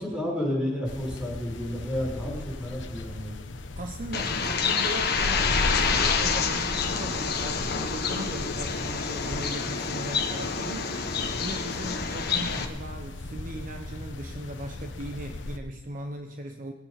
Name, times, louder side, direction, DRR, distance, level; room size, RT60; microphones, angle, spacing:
voice 1, 0.0-3.3, left 1 dB, 5° right, -3 dB, 6.9 m, -31 dB
sound 1, 0.8-15.6, left 1 dB, 85° left, 1.1 m, -36 dB
voice 2, 3.8-16.7, right 1 dB, 45° right, 4 dB, 1.0 m, -38 dB
Bird, 4.1-12.6, left 5 dB, 60° left, 1.6 m, -28 dB
21.5 x 9.0 x 5.9 m, 1.0 s
head